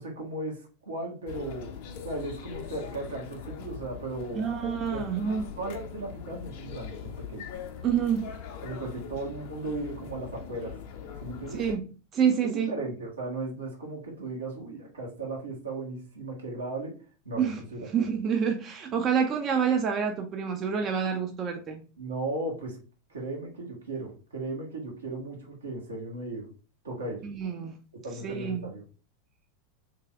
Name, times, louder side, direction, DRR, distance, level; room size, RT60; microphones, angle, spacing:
voice 1, 0.0-1.7 2.0-4.4 4.9-5.0 5.6-7.5 8.6-10.7 11.2-11.6 12.4-16.9 17.2-17.9 22.0-22.8 23.1-26.5 26.8-27.2 28.0-28.8, right 2 dB, 75° right, -2 dB, 1.4 m, -36 dB
sound 1, 1.3-11.8, left 7 dB, 50° left, 0.6 m, -42 dB
voice 2, 4.3-5.5 7.8-8.3 11.5-11.8 12.1-12.7 17.4-17.6 17.9-21.8 27.2-27.7 28.2-28.7, right 7 dB, 30° right, 4 dB, 0.5 m, -27 dB
3.3 x 3.2 x 3.3 m, 0.36 s
figure-of-eight pair, 85°, 0 cm